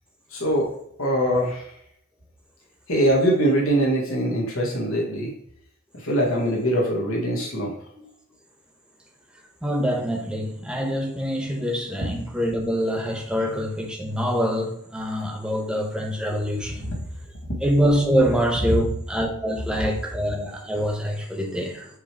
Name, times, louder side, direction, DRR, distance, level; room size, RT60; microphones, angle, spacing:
voice 1, 0.3-0.7 1.0-1.7 2.9-5.3 5.9-7.7 16.9-17.0 18.7-18.8, equal, 70° left, 1.8 m, -22 dB
voice 2, 9.6-16.9 17.6-21.9, equal, 5° right, 1.2 m, -25 dB
7.7 x 3.4 x 4.7 m
head